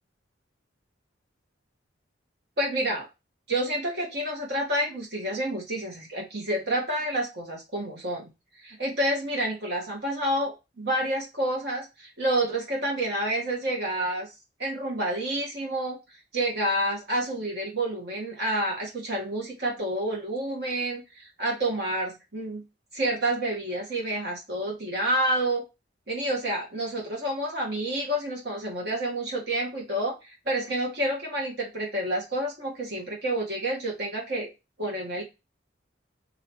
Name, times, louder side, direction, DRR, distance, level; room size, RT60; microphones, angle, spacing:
voice 1, 2.6-3.1 3.5-8.3 8.6-14.3 14.6-16.0 16.3-22.6 22.9-25.6 26.1-34.5 34.8-35.2, right 1 dB, 60° right, -1 dB, 1.7 m, -29 dB
3.1 x 2.9 x 4.4 m, 0.25 s
head